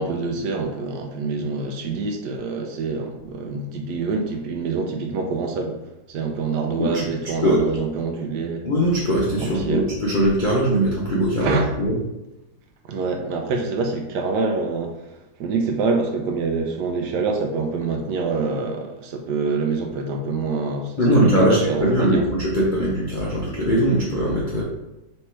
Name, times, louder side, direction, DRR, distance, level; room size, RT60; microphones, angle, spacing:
voice 1, 0.0-5.8 6.1-8.6 9.4-9.8 11.4-11.7 12.8-14.9 15.4-22.3, right 4 dB, 70° right, 3 dB, 1.1 m, -26 dB
voice 2, 8.6-12.0 21.0-24.6, equal, 50° left, -7 dB, 0.6 m, -20 dB
3.3 x 3.3 x 4.3 m, 0.95 s
omnidirectional pair, 2.0 m